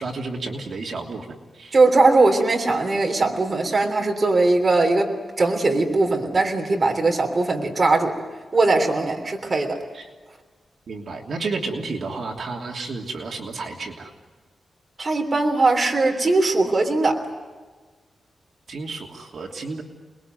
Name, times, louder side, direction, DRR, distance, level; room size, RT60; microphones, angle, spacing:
voice 1, 0.0-1.8 9.9-10.1 10.9-14.1 18.7-19.8, right 3 dB, 55° right, 1 dB, 3.0 m, -31 dB
voice 2, 1.7-5.1 5.4-8.2 8.5-9.8 15.0-17.2, right 3 dB, 30° right, 2 dB, 3.4 m, -20 dB
29.0 x 21.0 x 9.3 m, 1.4 s
wide cardioid pair, 165°, 0 cm